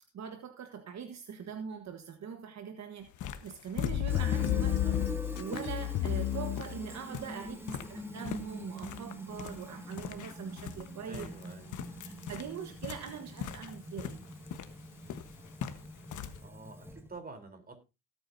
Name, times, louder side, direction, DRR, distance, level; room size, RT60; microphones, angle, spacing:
voice 1, 0.1-4.8 5.3-11.3 12.0-14.2, right 7 dB, 60° right, 1.4 m, -42 dB
sound 1, 3.0-16.4, left 9 dB, 80° left, 1.3 m, -43 dB
sound 2, 3.8-7.2 8.1-8.2, left 13 dB, 55° left, 0.6 m, -31 dB
Fill (with liquid), 4.1-17.2, right 1 dB, 10° right, 1.9 m, -45 dB
voice 2, 7.4-8.0 11.1-11.8 16.4-17.8, right 3 dB, 30° right, 3.8 m, -49 dB
18.0 x 8.6 x 2.7 m
cardioid pair, 90°, 30 cm